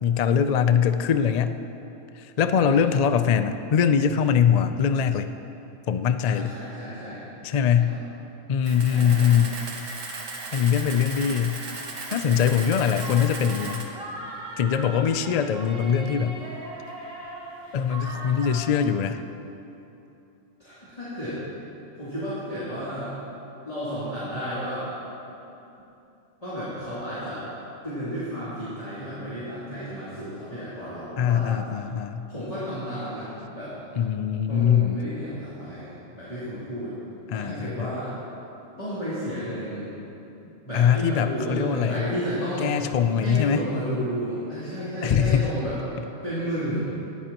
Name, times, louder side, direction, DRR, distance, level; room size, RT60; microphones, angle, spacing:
voice 1, 0.0-1.6 2.2-5.3 5.9-6.5 7.4-7.9 8.5-9.5 10.5-11.6 12.1-13.9 14.6-16.4 17.7-19.2 31.2-32.3 34.0-35.0 37.3-37.9 40.7-42.1 42.6-43.7 45.0-45.5, left 8 dB, 70° left, 9 dB, 0.3 m, -22 dB
voice 2, 6.3-7.2 7.7-8.0 8.9-9.5 20.6-21.4 22.0-23.1 23.6-24.9 25.3-25.4 26.4-31.6 32.3-33.7 34.5-36.9 37.3-38.1 38.8-39.9 40.6-42.7 43.2-45.7 46.2-46.8, equal, 30° left, -13 dB, 3.1 m, -32 dB
Camera, 8.6-13.8, right 3 dB, 80° right, 1.6 m, -36 dB
sound 1, 12.4-18.8, right 2 dB, 50° right, 1.6 m, -39 dB
18.5 x 13.0 x 3.0 m, 2.9 s
omnidirectional pair, 1.3 m